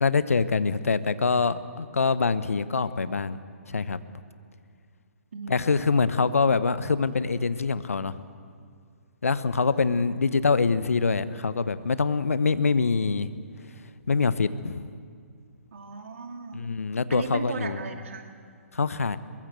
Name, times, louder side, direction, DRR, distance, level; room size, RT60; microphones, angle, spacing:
voice 1, 0.0-3.4 3.7-4.0 5.5-8.2 9.2-13.3 14.1-14.9 16.5-17.8 18.7-19.2, left 4 dB, 70° left, 14 dB, 1.0 m, -24 dB
voice 2, 5.3-5.8 9.5-10.2 15.7-16.7 17.1-18.3, right 4 dB, 60° right, 5 dB, 2.6 m, -37 dB
22.5 x 22.5 x 8.1 m, 2.2 s
figure-of-eight pair, 130°, 8 cm